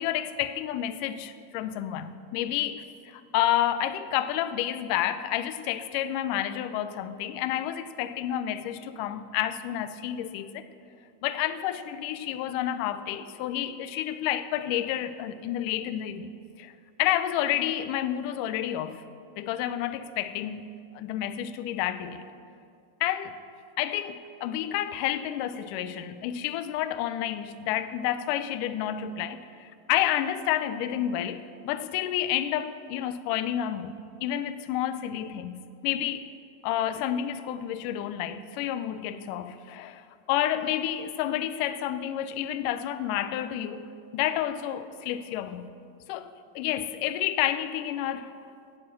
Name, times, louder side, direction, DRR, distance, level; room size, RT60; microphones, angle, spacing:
voice 1, 0.0-10.7 11.2-16.3 16.6-16.7 17.0-19.0 19.4-20.7 20.9-22.2 23.0-23.4 23.8-34.0 34.2-36.3 36.6-43.9 44.1-45.7 46.1-48.3, left 11 dB, 85° left, 1.9 m, -30 dB
17.0 x 9.2 x 7.4 m
omnidirectional pair, 4.4 m